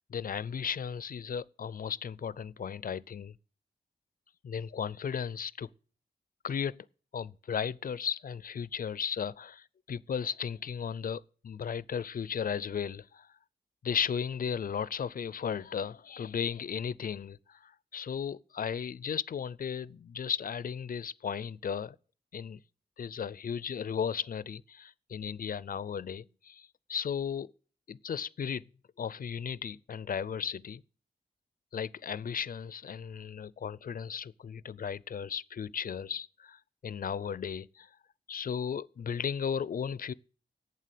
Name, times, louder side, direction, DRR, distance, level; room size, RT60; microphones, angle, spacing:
voice 1, 0.1-3.3 4.4-5.7 6.4-6.9 7.1-13.3 13.8-22.0 22.3-22.6 23.0-27.5 27.9-28.6 29.0-30.8 31.7-37.9 38.3-40.1, left 7 dB, 55° left, 0.4 m, -35 dB
8.6 x 7.6 x 8.3 m
wide cardioid pair, 110°, 17 cm